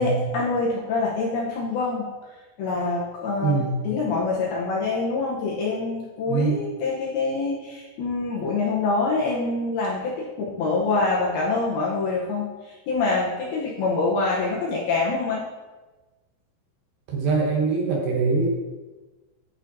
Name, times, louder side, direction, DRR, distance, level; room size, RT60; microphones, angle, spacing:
voice 1, 0.0-2.1 2.6-15.4, left 3 dB, 75° left, -5 dB, 2.4 m, -25 dB
voice 2, 3.4-3.7 6.3-6.6 17.1-18.5, right 4 dB, 70° right, -2 dB, 2.4 m, -23 dB
11.0 x 5.0 x 2.7 m, 1.2 s
omnidirectional pair, 5.4 m